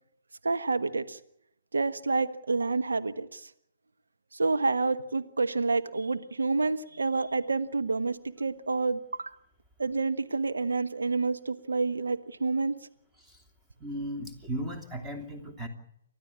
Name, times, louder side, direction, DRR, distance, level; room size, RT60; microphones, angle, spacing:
voice 1, 0.4-1.2 1.7-3.5 4.3-9.3 9.8-12.7, right 3 dB, 75° right, 9 dB, 1.4 m, -28 dB
voice 2, 13.8-15.7, equal, 10° right, 3 dB, 3.0 m, -36 dB
29.5 x 12.5 x 8.5 m, 0.77 s
figure-of-eight pair, 130°, 0 cm